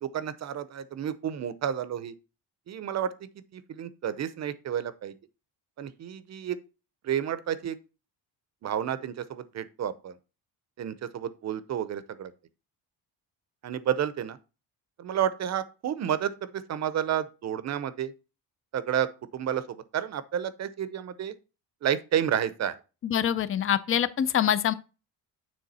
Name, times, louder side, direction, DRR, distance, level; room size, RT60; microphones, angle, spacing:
voice 1, 0.0-2.1 2.7-3.1 3.5-5.1 5.8-6.6 7.0-7.8 8.6-10.1 10.8-12.3 13.6-14.4 15.0-18.1 18.7-21.3 21.8-22.7, right 9 dB, 40° right, 0.7 m, -30 dB
voice 2, 23.0-24.7, left 9 dB, 35° left, 0.5 m, -25 dB
9.4 x 3.7 x 4.1 m
cardioid pair, 150°, 40 cm